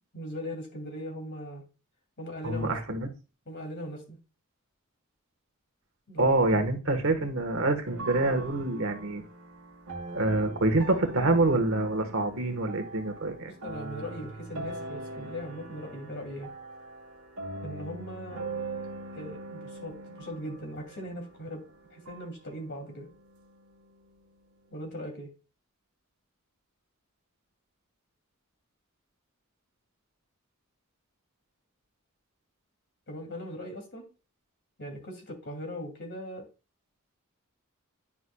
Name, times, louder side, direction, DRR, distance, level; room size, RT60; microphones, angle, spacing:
voice 1, 0.1-1.6 2.2-3.0 3.5-4.2 6.1-6.7 13.4-16.5 17.6-18.4 19.1-21.6 21.9-23.1 24.7-25.3 33.1-34.1 34.8-36.5, equal, 55° left, 2 dB, 2.6 m, -39 dB
voice 2, 2.4-3.1 6.2-9.2 10.1-13.5, right 2 dB, 65° right, 6 dB, 1.2 m, -26 dB
sound 1, 7.8-24.0, right 2 dB, 90° right, 1.5 m, -42 dB
9.8 x 5.9 x 2.3 m, 0.31 s
head